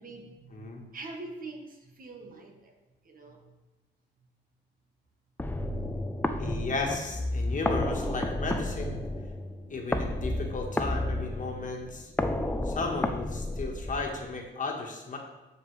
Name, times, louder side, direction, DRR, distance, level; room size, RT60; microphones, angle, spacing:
voice 1, 0.0-2.8 3.0-3.5 9.1-10.1, right 3 dB, 45° right, 3 dB, 1.5 m, -46 dB
voice 2, 0.5-0.8 6.4-9.0 9.7-12.1 12.6-15.2, left 3 dB, 40° left, 1 dB, 1.6 m, -34 dB
sound 1, 5.4-14.4, left 1 dB, 10° left, 0.6 m, -31 dB
12.0 x 5.2 x 3.4 m, 1.1 s
cardioid pair, 90°, 20 cm